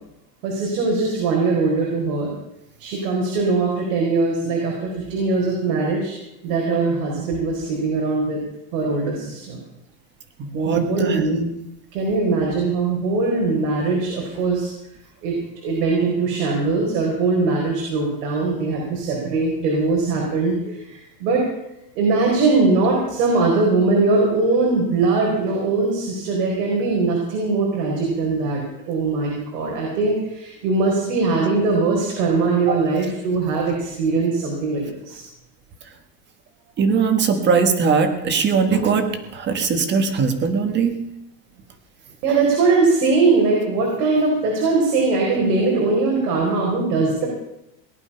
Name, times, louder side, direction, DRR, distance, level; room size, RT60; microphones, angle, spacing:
voice 1, 0.4-2.3 2.8-6.1 6.4-8.4 8.7-9.6 10.6-11.4 11.9-14.7 15.2-21.5 22.0-35.2 42.2-47.3, right 3 dB, 75° right, -2 dB, 4.6 m, -21 dB
voice 2, 10.4-11.5 32.7-32.8 36.8-41.0, right 5 dB, 20° right, 8 dB, 1.4 m, -20 dB
18.5 x 11.0 x 5.6 m, 0.85 s
supercardioid pair, 170°, 48 cm